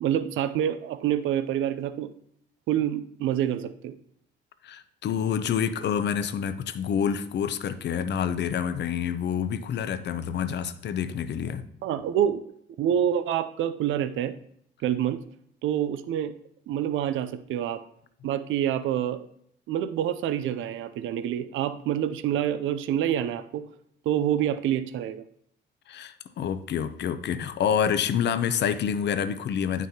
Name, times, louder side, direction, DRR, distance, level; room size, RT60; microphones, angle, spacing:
voice 1, 0.0-2.1 2.7-3.9 11.8-12.4 12.8-14.3 14.8-15.2 15.6-16.3 16.7-17.8 18.2-19.3 19.7-23.7 24.1-25.2, right 10 dB, 80° right, 12 dB, 0.5 m, -27 dB
voice 2, 4.6-11.6 25.9-29.9, left 8 dB, 60° left, 11 dB, 0.6 m, -27 dB
9.0 x 6.1 x 2.8 m, 0.69 s
cardioid pair, 90°, 20 cm